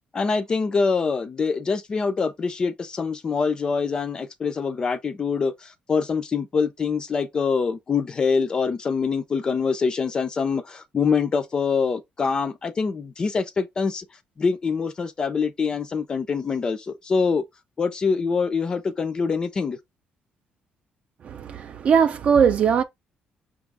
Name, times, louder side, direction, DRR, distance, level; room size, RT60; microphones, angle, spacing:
voice 1, 0.1-14.1 14.4-17.4 17.8-19.8, left 5 dB, 25° left, 0.4 m, -24 dB
voice 2, 21.2-22.8, right 7 dB, 45° right, 0.4 m, -20 dB
5.8 x 2.4 x 3.3 m
cardioid pair, 165°, 3 cm